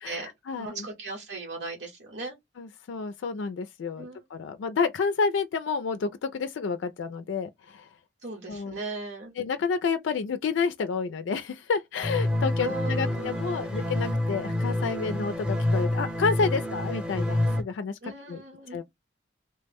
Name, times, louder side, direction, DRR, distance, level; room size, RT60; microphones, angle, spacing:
voice 1, 0.0-0.8 2.6-7.9 8.5-8.8 9.4-18.0 18.3-18.4 18.7-18.8, left 5 dB, 80° left, 0.3 m, -30 dB
voice 2, 0.6-2.4 3.9-4.2 8.2-9.3 12.6-13.8 18.0-18.8, right 3 dB, 75° right, 1.1 m, -37 dB
sound 1, 12.0-17.6, left 1 dB, 5° right, 0.7 m, -28 dB
3.1 x 2.1 x 3.3 m
head